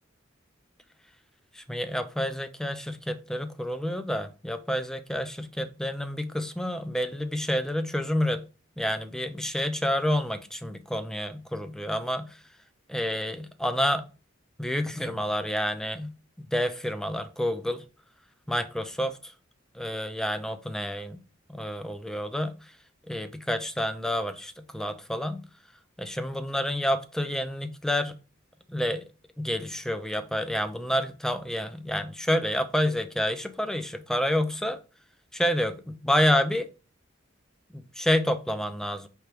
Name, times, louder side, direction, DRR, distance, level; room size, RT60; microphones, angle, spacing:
voice 1, 1.5-8.4 8.8-12.4 12.9-14.0 14.6-16.1 16.4-17.8 18.5-19.3 19.7-21.2 21.5-22.5 23.1-25.4 26.0-28.2 28.7-29.0 29.4-34.8 35.3-36.7 37.7-39.1, left 1 dB, 5° left, 0.5 m, -29 dB
6.2 x 3.5 x 4.4 m
head